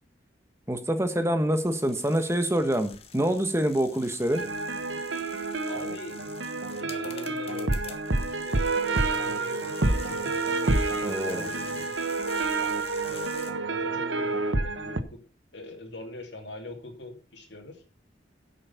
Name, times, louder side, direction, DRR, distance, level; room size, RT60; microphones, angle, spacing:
voice 1, 0.7-4.4 11.0-11.5, right 1 dB, 15° right, 9 dB, 1.4 m, -26 dB
sound 1, 1.5-13.5, left 6 dB, 30° left, 1.7 m, -47 dB
sound 2, 4.3-15.0, right 3 dB, 85° right, 1.2 m, -28 dB
voice 2, 5.6-6.5 6.8-10.4 10.9-12.0 13.1-15.2 15.5-17.8, left 2 dB, 70° left, 3 dB, 2.7 m, -43 dB
10.0 x 8.3 x 5.7 m, 0.34 s
head